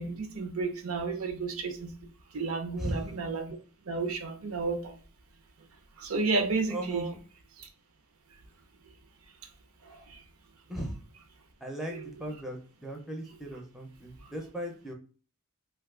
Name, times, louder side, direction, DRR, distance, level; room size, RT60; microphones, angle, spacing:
voice 1, 0.0-2.0 2.3-3.6 3.9-4.9 6.0-7.1 7.6-7.7 9.8-10.2, right 3 dB, 75° right, 7 dB, 0.6 m, -32 dB
voice 2, 2.8-3.1 6.7-7.2 10.7-11.0 11.6-14.9, right 1 dB, ahead, 1 dB, 0.5 m, -37 dB
2.6 x 2.3 x 3.5 m, 0.38 s
head